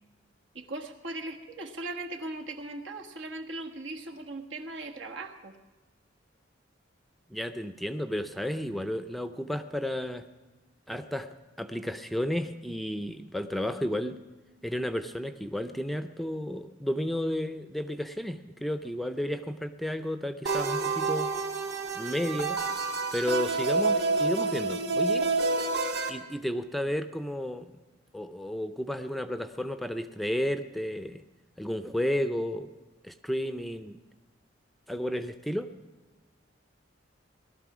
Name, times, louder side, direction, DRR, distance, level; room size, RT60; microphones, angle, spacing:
voice 1, 0.5-5.5, right 2 dB, 80° right, 3 dB, 1.5 m, -39 dB
voice 2, 7.3-10.3 10.9-14.2 14.6-21.3 21.9-22.6 23.1-25.3 26.1-27.7 28.1-31.2 31.6-32.7 33.0-34.0 34.9-35.7, left 1 dB, ahead, 10 dB, 0.5 m, -32 dB
sound 1, 20.5-26.1, right 3 dB, 60° right, 1.7 m, -28 dB
18.5 x 12.0 x 6.1 m, 1.2 s
head